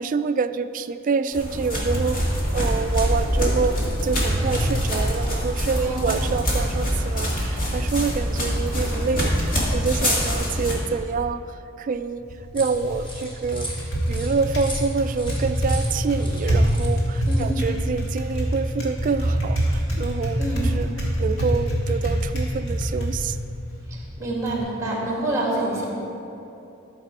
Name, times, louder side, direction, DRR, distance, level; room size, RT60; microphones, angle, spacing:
voice 1, 0.0-11.4 11.8-12.2 12.5-13.7 14.1-20.4 20.7-20.9 21.2-23.4, right 5 dB, 40° right, 12 dB, 0.3 m, -27 dB
sound 1, 1.3-10.8, equal, 45° left, 2.1 m, -24 dB
voice 2, 5.8-6.3 17.2-17.6 20.4-20.7 23.9-25.9, right 1 dB, 15° right, -4 dB, 2.3 m, -27 dB
Typing, 12.2-24.6, equal, 80° left, 2.1 m, -25 dB
sound 2, 12.5-17.8, equal, 25° left, 1.7 m, -39 dB
12.0 x 6.5 x 4.8 m, 2.8 s
head